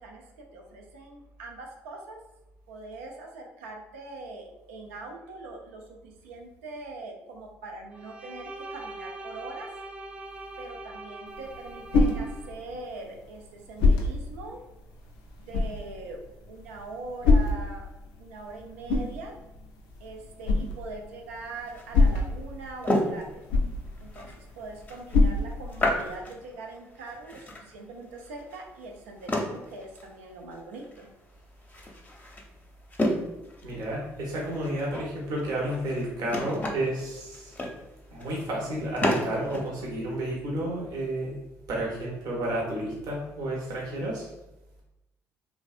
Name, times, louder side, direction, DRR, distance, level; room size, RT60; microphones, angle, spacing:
voice 1, 0.0-2.2 2.7-9.7 10.6-14.6 15.4-17.9 18.2-19.4 20.0-23.3 24.0-31.1, right 3 dB, 85° right, 2 dB, 0.4 m, -42 dB
Bowed string instrument, 7.9-12.6, right 2 dB, 15° right, 0.4 m, -42 dB
sound 1, 11.3-26.2, left 3 dB, 75° left, 0.4 m, -28 dB
sound 2, 21.5-39.7, left 1 dB, 25° left, 0.6 m, -33 dB
voice 2, 33.6-37.5 38.1-41.3 41.7-44.3, right 1 dB, 65° right, -4 dB, 0.8 m, -31 dB
2.6 x 2.2 x 2.3 m, 0.94 s
hypercardioid pair, 55°, 7 cm